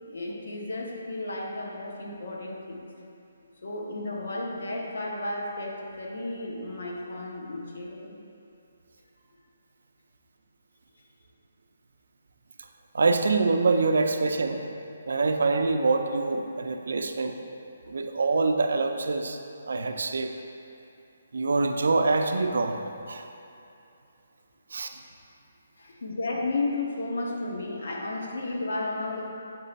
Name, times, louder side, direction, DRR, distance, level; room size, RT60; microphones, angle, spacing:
voice 1, 0.1-2.9 3.6-8.2 25.8-29.3, left 2 dB, 75° left, -1 dB, 1.0 m, -33 dB
voice 2, 12.9-14.6 15.1-17.4 17.9-19.4 19.7-20.3 21.3-22.8 23.1-23.2 24.7-24.9, right 3 dB, 75° right, 6 dB, 0.4 m, -25 dB
7.3 x 3.3 x 4.0 m, 2.7 s
hypercardioid pair, 170°, 0 cm